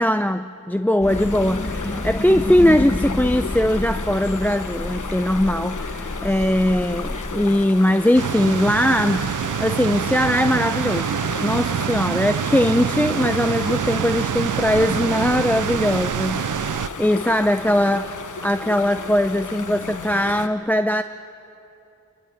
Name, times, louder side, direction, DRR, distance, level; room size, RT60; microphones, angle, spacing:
voice 1, 0.0-9.3 9.6-18.0 18.4-21.0, left 1 dB, 5° left, 10 dB, 0.5 m, -20 dB
sound 1, 1.0-7.6, left 1 dB, 20° left, 1.2 m, -29 dB
sound 2, 1.1-20.5, left 5 dB, 80° left, 1.1 m, -34 dB
sound 3, 8.1-16.9, right 9 dB, 80° right, 0.5 m, -25 dB
29.0 x 13.5 x 9.2 m, 2.8 s
wide cardioid pair, 45°, 30 cm